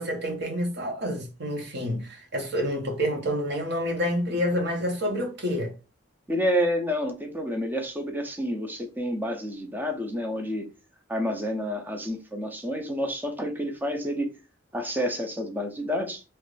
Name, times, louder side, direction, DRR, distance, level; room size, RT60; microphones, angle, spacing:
voice 1, 0.0-5.7, equal, 55° right, 1.0 m, -28 dB
voice 2, 6.3-10.7 11.1-14.3 14.7-16.2, equal, 10° right, 0.5 m, -29 dB
3.0 x 2.5 x 3.2 m
head